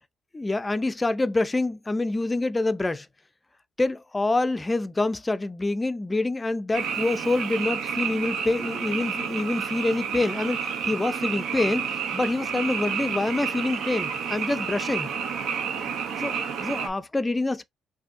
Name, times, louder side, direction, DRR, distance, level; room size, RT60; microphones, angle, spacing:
voice 1, 0.3-3.1 3.8-15.1 16.2-17.6, left 2 dB, 20° left, 0.4 m, -26 dB
Frog, 6.7-16.9, right 6 dB, 80° right, 0.8 m, -30 dB
5.0 x 2.6 x 2.5 m
cardioid pair, 90°, 0 cm